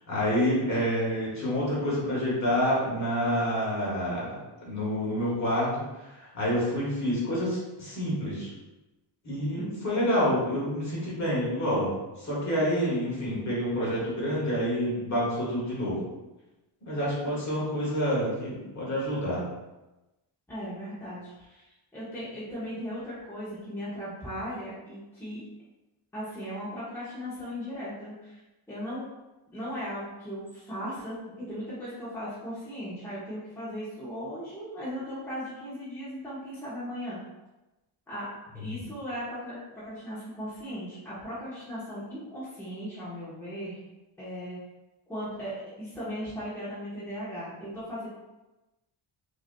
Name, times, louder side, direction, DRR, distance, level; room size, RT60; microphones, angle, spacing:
voice 1, 0.1-5.8 6.2-8.5 9.2-11.9 12.2-16.0 16.8-19.4 38.6-38.8, equal, 35° left, -7 dB, 1.4 m, -28 dB
voice 2, 9.5-10.1 20.5-25.4 26.1-28.4 28.7-29.0 29.5-31.1 31.5-37.2 38.1-38.3 38.5-43.8 44.2-44.6 45.1-48.1, equal, 5° left, -11 dB, 1.1 m, -37 dB
5.7 x 2.8 x 2.2 m, 1.0 s
wide cardioid pair, 170°, 49 cm